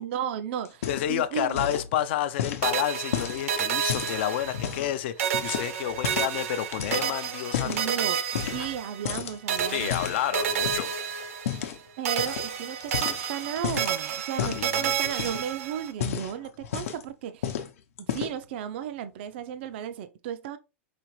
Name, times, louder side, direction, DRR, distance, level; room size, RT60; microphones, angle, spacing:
voice 1, 0.0-1.7 7.6-8.2 8.5-10.0 12.0-17.5 18.1-20.6, right 9 dB, 50° right, 0.4 m, -34 dB
sound 1, 0.6-1.2 1.5-1.9 2.4-4.9 5.3-6.4 6.7-7.9 8.3-8.8 9.0-10.9 11.4-11.8 12.2-12.5 12.8-13.9 14.4-14.7 15.1-15.5 15.9-17.1 17.4-17.7 18.0-18.5, left 9 dB, 80° left, 0.8 m, -32 dB
voice 2, 0.9-7.9 9.7-10.9 14.4-15.2, left 12 dB, 50° left, 0.4 m, -30 dB
sound 2, 2.6-4.9 5.2-9.2 9.5-11.8 12.0-15.9, right 8 dB, 90° right, 1.0 m, -30 dB
5.0 x 3.3 x 3.0 m
supercardioid pair, 170°, 7 cm